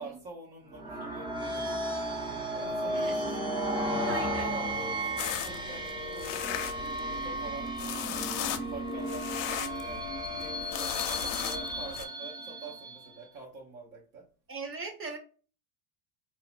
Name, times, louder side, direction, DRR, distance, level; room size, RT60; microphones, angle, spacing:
voice 1, 0.0-1.8 2.5-3.3 3.8-10.1 10.3-14.3, right 3 dB, 60° right, -3 dB, 1.0 m, -46 dB
sound 1, 0.7-13.2, right 1 dB, 10° right, 0.5 m, -34 dB
voice 2, 2.9-3.4 4.0-4.5 14.5-15.2, right 4 dB, 30° right, 4 dB, 0.9 m, -40 dB
sound 2, 5.2-12.0, left 10 dB, 65° left, 0.5 m, -37 dB
2.6 x 2.0 x 2.4 m, 0.37 s
supercardioid pair, 90°, 46 cm